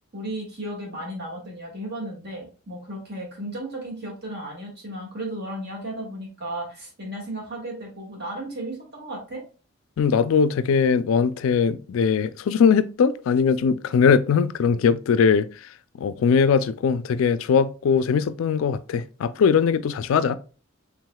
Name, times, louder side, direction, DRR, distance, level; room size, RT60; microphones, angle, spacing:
voice 1, 0.1-9.4, right 1 dB, 50° right, 1.7 m, -34 dB
voice 2, 10.0-15.5 16.0-20.4, left 6 dB, 75° left, 0.3 m, -20 dB
4.7 x 3.5 x 2.2 m
head